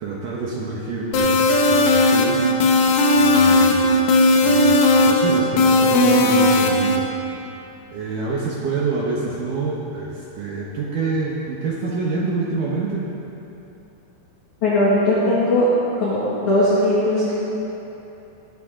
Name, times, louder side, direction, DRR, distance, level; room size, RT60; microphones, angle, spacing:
voice 1, 0.0-2.7 3.1-4.0 4.4-4.8 5.0-7.1 7.9-13.1, right 3 dB, 65° right, -4 dB, 2.2 m, -27 dB
sound 1, 1.1-7.0, left 2 dB, 75° left, 3.2 m, -16 dB
voice 2, 14.6-15.7 16.0-17.3, left 1 dB, 50° left, -10 dB, 2.9 m, -18 dB
17.5 x 12.5 x 3.8 m, 3.0 s
omnidirectional pair, 5.1 m